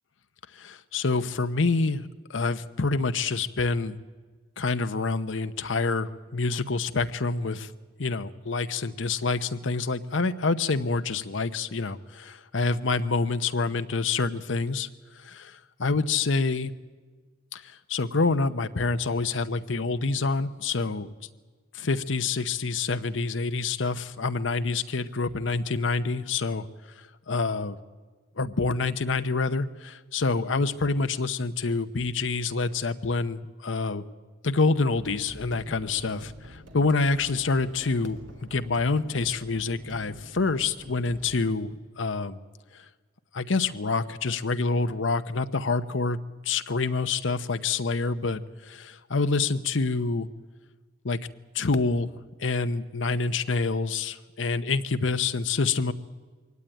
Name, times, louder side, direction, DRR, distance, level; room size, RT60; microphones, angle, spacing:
voice 1, 0.6-4.0 4.6-7.7 8.0-14.9 15.2-16.7 17.5-21.1 21.7-26.7 27.3-27.8 28.4-34.0 34.4-38.2 38.5-42.4 43.3-46.2 46.4-48.4 48.7-50.3 51.0-51.2 51.5-52.1 52.4-55.9, left 3 dB, 85° left, 11 dB, 0.9 m, -27 dB
sound 1, 34.9-41.4, equal, 80° right, 2.7 m, -46 dB
23.0 x 18.0 x 9.1 m, 1.4 s
head